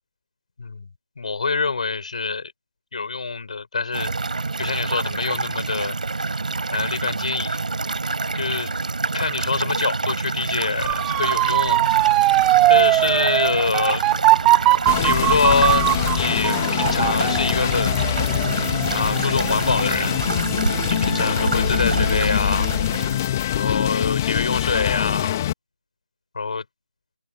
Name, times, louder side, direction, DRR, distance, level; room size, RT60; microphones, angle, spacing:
voice 1, 1.2-2.5 2.9-4.1 4.6-5.9 6.7-7.6 8.3-8.7 9.1-11.8 12.7-14.0 15.0-18.1 18.9-20.2 21.0-22.7 23.5-25.3 26.3-26.6, left 4 dB, 40° left, 5.0 m, -25 dB
sound 1, 3.9-23.2, right 3 dB, 45° right, 6.6 m, -27 dB
Motor vehicle (road) / Siren, 10.8-19.7 20.1-20.6, right 18 dB, 5° right, 0.9 m, -20 dB
sound 2, 14.9-25.5, left 12 dB, 15° left, 2.6 m, -24 dB
open air
figure-of-eight pair, 160°, 6 cm